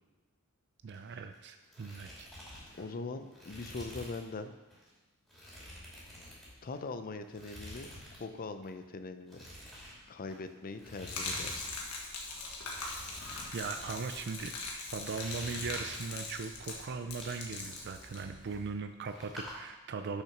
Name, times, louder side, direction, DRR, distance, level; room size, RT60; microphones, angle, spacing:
sound 1, 0.8-1.4 1.6-4.3 4.7-4.9 5.3-6.9 7.3-8.2 8.5-8.7 9.3-11.7 12.0-12.1 12.6-13.9 14.5-14.7 15.0-16.5 16.9-18.8 19.1-19.5, left 1 dB, ahead, 2.8 m, -48 dB
voice 1, 0.8-2.3 13.5-14.5 14.9-20.2, right 5 dB, 50° right, 7 dB, 0.4 m, -39 dB
voice 2, 2.8-4.5 6.6-7.9 8.2-9.4 10.1-11.7, left 3 dB, 40° left, 9 dB, 0.5 m, -41 dB
Gurgling / Liquid, 11.1-18.7, left 3 dB, 85° left, 1.4 m, -41 dB
6.5 x 6.0 x 5.8 m, 1.1 s
head